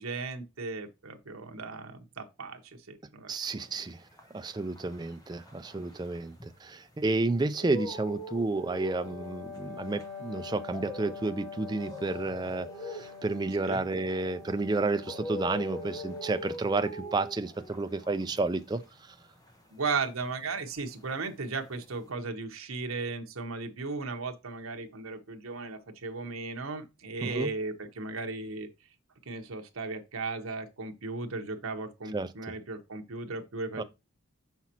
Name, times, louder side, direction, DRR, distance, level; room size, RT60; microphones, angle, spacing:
voice 1, 0.0-3.6 13.6-13.9 19.7-28.7 29.2-33.8, right 4 dB, 80° right, 0.9 m, -36 dB
voice 2, 3.3-4.0 4.3-19.2 27.2-27.5 32.1-32.3 33.8-33.9, right 3 dB, 20° right, 0.3 m, -31 dB
sound 1, 3.7-7.0 7.3-20.8 21.0-22.1, left 1 dB, 15° left, 0.9 m, -43 dB
Wind instrument woodwind instrument, 8.5-16.6, left 5 dB, 90° left, 2.9 m, -45 dB
5.9 x 5.7 x 2.9 m
head